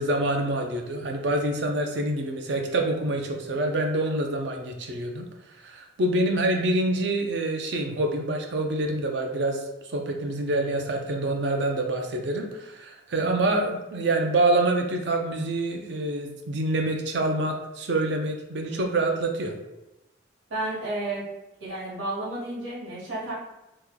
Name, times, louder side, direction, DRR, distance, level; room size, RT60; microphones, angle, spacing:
voice 1, 0.0-5.2 5.6-9.6 9.9-19.5, right 2 dB, 65° right, 3 dB, 0.5 m, -26 dB
voice 2, 20.5-21.2 21.6-23.3, right 2 dB, 85° right, -8 dB, 1.4 m, -31 dB
3.1 x 2.2 x 3.6 m, 0.98 s
head